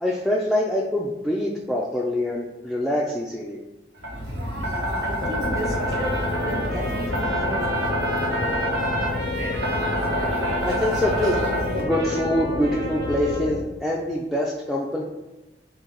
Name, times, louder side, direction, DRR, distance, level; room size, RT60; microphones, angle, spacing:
voice 1, 0.0-3.6 10.6-11.4 11.8-15.0, left 1 dB, ahead, -3 dB, 0.3 m, -25 dB
sound 1, 4.0-11.8, equal, 90° right, 1.3 m, -27 dB
voice 2, 4.6-8.0 11.2-11.4, right 1 dB, 20° right, -3 dB, 1.0 m, -34 dB
sound 2, 5.2-13.6, left 2 dB, 65° left, 0.4 m, -30 dB
Trumpet, 5.8-13.5, right 1 dB, 70° right, 1.1 m, -35 dB
3.8 x 2.7 x 4.6 m, 1.1 s
head